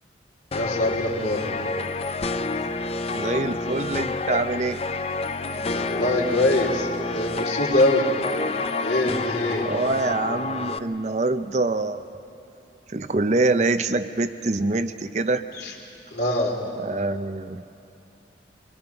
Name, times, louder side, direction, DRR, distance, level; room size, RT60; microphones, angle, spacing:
voice 1, 0.5-1.5 5.7-6.9 7.1-8.1 8.8-9.7 15.5-15.7 16.1-16.5, left 1 dB, 65° left, 0 dB, 3.3 m, -23 dB
sound 1, 0.5-10.8, left 3 dB, 30° left, 0.5 m, -29 dB
voice 2, 3.1-4.8 9.6-12.1 12.9-15.4 16.8-17.6, right 2 dB, 40° right, 10 dB, 0.5 m, -25 dB
27.0 x 22.0 x 5.8 m, 2.7 s
head